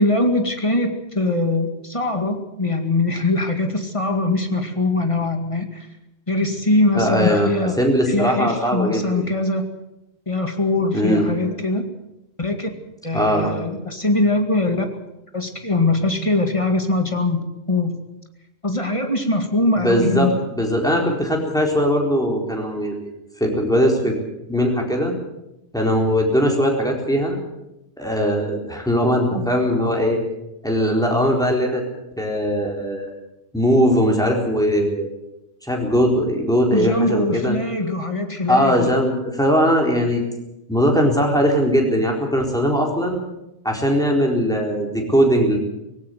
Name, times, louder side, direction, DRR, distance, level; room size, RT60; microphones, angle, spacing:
voice 1, 0.0-5.9 6.3-7.8 8.1-9.7 10.3-11.9 12.4-12.7 13.0-14.9 15.3-18.0 18.6-20.3 36.7-39.0, left 2 dB, 30° left, 5 dB, 2.1 m, -22 dB
voice 2, 7.0-7.5 7.8-9.2 10.9-11.3 13.1-13.5 19.8-23.1 23.4-24.2 24.5-25.1 25.7-27.4 28.0-30.2 30.6-31.8 32.2-33.1 33.5-35.1 35.7-37.5 38.5-40.2 40.7-43.2 43.6-45.6, equal, 5° left, 0 dB, 4.3 m, -20 dB
19.0 x 17.0 x 8.1 m, 0.92 s
omnidirectional pair, 1.1 m